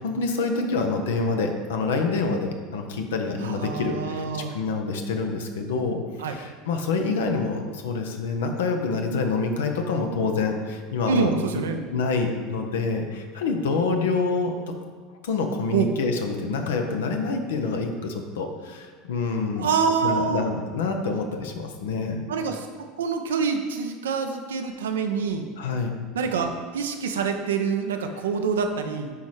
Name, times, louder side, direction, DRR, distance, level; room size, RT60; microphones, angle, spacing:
voice 1, 0.0-11.3 11.9-14.5 15.2-19.7 20.0-22.2 25.6-25.9, left 4 dB, 80° left, 4 dB, 0.7 m, -27 dB
voice 2, 3.4-4.5 6.2-6.4 11.1-11.8 15.7-15.9 19.6-20.4 22.3-22.7 23.0-25.5 26.1-29.1, right 6 dB, 80° right, 5 dB, 0.5 m, -26 dB
8.3 x 4.2 x 3.2 m, 1.5 s
hypercardioid pair, 85°, 0 cm